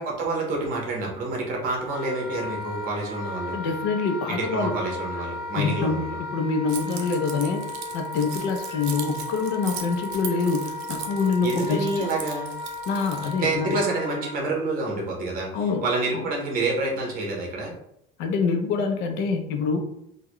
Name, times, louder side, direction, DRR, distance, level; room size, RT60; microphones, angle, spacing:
voice 1, 0.0-3.6 4.3-6.2 11.4-12.5 13.4-17.7, right 2 dB, 45° right, -1 dB, 1.1 m, -28 dB
Wind instrument woodwind instrument, 1.8-14.3, left 2 dB, ahead, 1.2 m, -35 dB
voice 2, 3.5-4.8 5.5-6.0 6.3-7.7 7.9-12.1 12.9-13.8 15.5-15.9 16.1-16.3 18.2-19.8, left 4 dB, 65° left, 5 dB, 0.6 m, -25 dB
Keys jangling, 6.7-13.4, right 8 dB, 85° right, 0.6 m, -39 dB
3.7 x 2.2 x 3.0 m, 0.75 s
cardioid pair, 165°, 20 cm